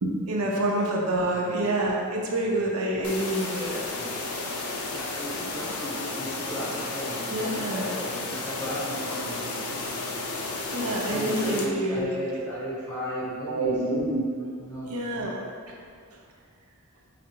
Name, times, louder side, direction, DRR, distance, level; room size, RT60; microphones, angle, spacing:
voice 1, 0.0-3.8 7.3-7.9 10.7-12.1 13.5-14.2 14.8-15.4, right 1 dB, 85° right, -2 dB, 0.6 m, -27 dB
sound 1, 3.0-11.7, left 3 dB, 85° left, 0.5 m, -33 dB
voice 2, 4.9-9.4 11.1-13.7 14.6-14.9, equal, 10° left, -9 dB, 1.2 m, -35 dB
4.8 x 2.0 x 4.4 m, 2.4 s
head